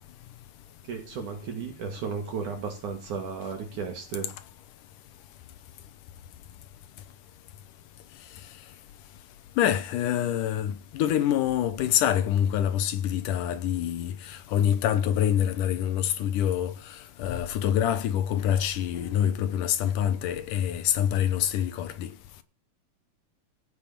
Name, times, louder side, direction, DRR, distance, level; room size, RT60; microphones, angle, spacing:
voice 1, 0.8-4.3, right 5 dB, 60° right, 3.2 m, -34 dB
voice 2, 9.6-22.1, left 10 dB, 70° left, 2.3 m, -26 dB
16.0 x 6.0 x 7.3 m
omnidirectional pair, 4.1 m